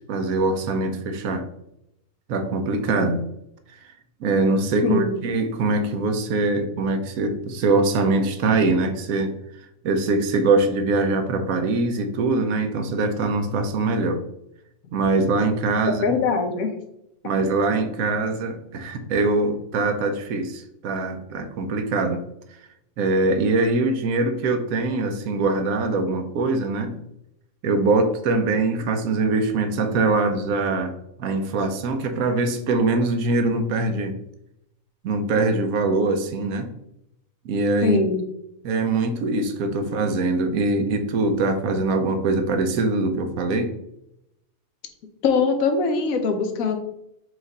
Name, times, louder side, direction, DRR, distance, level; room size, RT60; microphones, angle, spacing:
voice 1, 0.0-1.5 2.3-3.2 4.2-9.3 9.8-14.2 14.9-16.2 17.2-22.2 23.0-27.0 27.6-30.9 31.2-34.1 35.0-36.7 37.4-38.0 38.6-43.7, right 3 dB, 90° right, 7 dB, 1.1 m, -23 dB
voice 2, 4.8-5.2 16.0-16.7 37.8-38.2 45.2-46.8, left 4 dB, 80° left, 6 dB, 1.1 m, -22 dB
4.7 x 2.4 x 4.0 m, 0.80 s
omnidirectional pair, 1.4 m